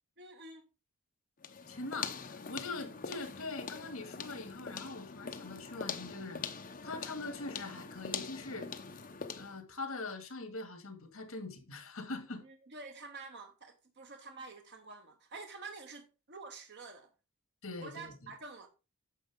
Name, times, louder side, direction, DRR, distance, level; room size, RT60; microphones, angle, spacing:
voice 1, 0.2-0.6 12.4-17.1 17.8-18.7, right 4 dB, 50° right, 0.9 m, -48 dB
sound 1, 1.4-9.6, left 6 dB, 40° left, 0.8 m, -43 dB
voice 2, 1.7-6.5 6.8-8.7 9.4-12.4 17.6-18.3, left 3 dB, 70° left, 2.2 m, -42 dB
9.1 x 6.4 x 3.7 m
head